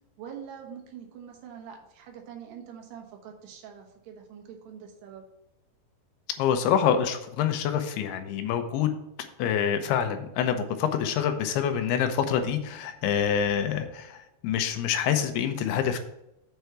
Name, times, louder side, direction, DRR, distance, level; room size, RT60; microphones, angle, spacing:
voice 1, 0.2-5.2, right 8 dB, 85° right, 3 dB, 3.3 m, -44 dB
voice 2, 6.4-8.9 9.4-16.0, left 8 dB, 85° left, 7 dB, 2.8 m, -26 dB
7.7 x 4.6 x 6.8 m, 0.86 s
omnidirectional pair, 4.6 m